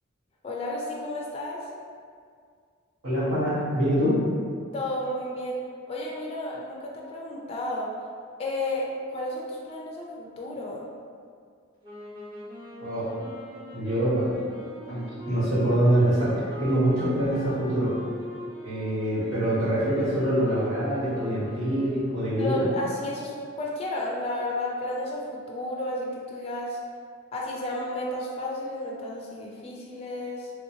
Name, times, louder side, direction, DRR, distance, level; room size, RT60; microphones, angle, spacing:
voice 1, 0.4-1.7 4.7-7.9 8.4-10.8 22.4-26.8 27.3-30.5, left 1 dB, 30° left, -3 dB, 0.3 m, -32 dB
voice 2, 3.0-4.2 12.8-13.1 13.7-14.4 14.9-17.9 18.6-22.6, right 1 dB, 80° right, -11 dB, 1.3 m, -25 dB
sound 1, 11.8-22.2, left 1 dB, 25° right, 0.9 m, -41 dB
3.1 x 2.8 x 2.7 m, 2.1 s
head